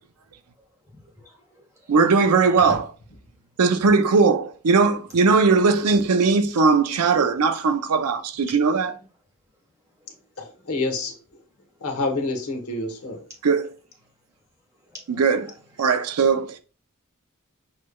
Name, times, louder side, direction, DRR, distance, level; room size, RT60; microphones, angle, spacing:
voice 1, 0.8-2.8 8.9-9.1 9.9-10.3 10.6-10.8 11.7-11.8 13.2-13.4 14.0-14.1 14.7-16.1, left 1 dB, 15° right, 1.8 m, -45 dB
voice 2, 1.9-2.8 3.6-8.9 13.4-13.6 15.2-15.4 15.8-16.6, right 4 dB, 85° right, 0.5 m, -19 dB
voice 3, 10.4-11.1 11.8-13.2, left 3 dB, 70° left, 1.0 m, -27 dB
6.3 x 3.1 x 2.2 m
head